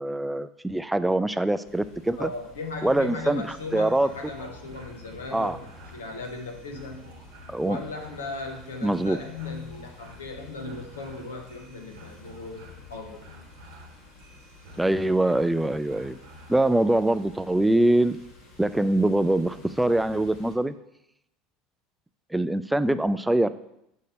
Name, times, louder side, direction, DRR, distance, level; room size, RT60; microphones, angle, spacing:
voice 1, 0.0-2.3 2.8-3.4 3.7-4.1 5.3-5.6 7.5-7.8 8.8-9.2 14.8-16.2 16.5-18.2 18.6-20.7 22.3-23.5, right 1 dB, 5° right, 12 dB, 0.3 m, -23 dB
sound 1, 1.6-20.6, left 3 dB, 65° left, 1.5 m, -51 dB
voice 2, 2.2-7.1 7.6-13.3, left 3 dB, 85° left, 3 dB, 0.8 m, -37 dB
sound 2, 3.5-16.7, left 1 dB, 75° right, 1.2 m, -50 dB
6.6 x 2.8 x 5.2 m, 0.83 s
hypercardioid pair, 75°, 0 cm